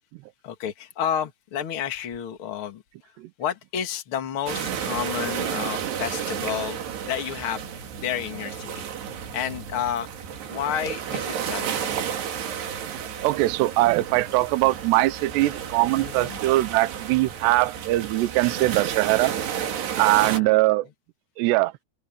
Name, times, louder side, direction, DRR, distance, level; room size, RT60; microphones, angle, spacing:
voice 1, 0.4-2.8 3.4-7.7 8.0-8.9 9.3-10.1 10.5-11.9 16.0-16.4 20.2-20.6, left 9 dB, 65° left, 1.3 m, -30 dB
sound 1, 4.5-20.4, right 8 dB, 60° right, 4.3 m, -32 dB
voice 2, 12.9-19.3 20.0-20.9 21.4-21.7, right 18 dB, 80° right, 2.5 m, -22 dB
omnidirectional pair, 5.8 m